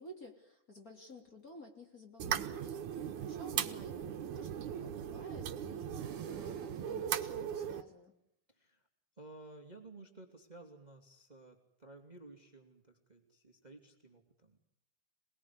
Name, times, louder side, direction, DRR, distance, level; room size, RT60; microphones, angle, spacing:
voice 1, 0.0-8.1, left 1 dB, 30° left, 3 dB, 3.1 m, -54 dB
sound 1, 2.2-7.8, right 9 dB, 70° right, 2.6 m, -38 dB
sound 2, 5.9-7.5, right 5 dB, 45° right, 3.1 m, -59 dB
voice 2, 8.5-8.9 9.2-14.6, right 2 dB, 15° right, 5 dB, 2.6 m, -55 dB
27.5 x 20.0 x 9.8 m, 0.75 s
omnidirectional pair, 3.6 m